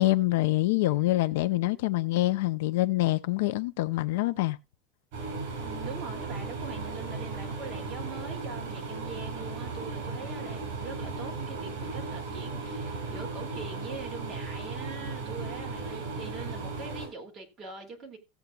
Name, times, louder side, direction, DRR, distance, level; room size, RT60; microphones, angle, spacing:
voice 1, 0.0-4.6, left 17 dB, 70° left, 0.6 m, -25 dB
sound 1, 5.1-17.1, right 3 dB, 55° right, 6.2 m, -36 dB
voice 2, 5.5-18.2, right 4 dB, 20° right, 2.5 m, -43 dB
17.0 x 8.0 x 2.3 m
supercardioid pair, 180°, 0 cm